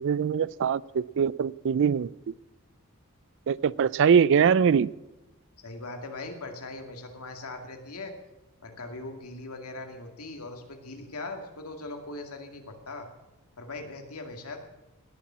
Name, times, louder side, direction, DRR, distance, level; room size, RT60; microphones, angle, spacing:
voice 1, 0.0-2.1 3.5-4.9, right 7 dB, 60° right, 21 dB, 0.4 m, -23 dB
voice 2, 5.6-8.1 8.6-13.1 13.6-14.6, left 2 dB, 85° left, 4 dB, 2.2 m, -40 dB
18.5 x 7.1 x 7.4 m, 1.0 s
head